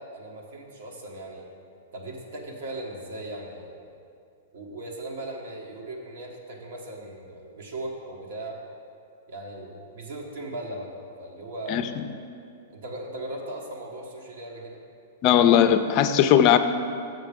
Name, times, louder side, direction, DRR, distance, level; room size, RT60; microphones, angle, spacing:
voice 1, 0.0-1.5 1.9-3.9 4.5-8.6 9.3-10.9 11.2-11.9 12.7-14.8, right 1 dB, 70° right, 0 dB, 1.4 m, -38 dB
voice 2, 15.2-16.6, left 10 dB, 45° left, 9 dB, 0.4 m, -18 dB
6.5 x 6.3 x 5.1 m, 2.4 s
hypercardioid pair, 125°, 0 cm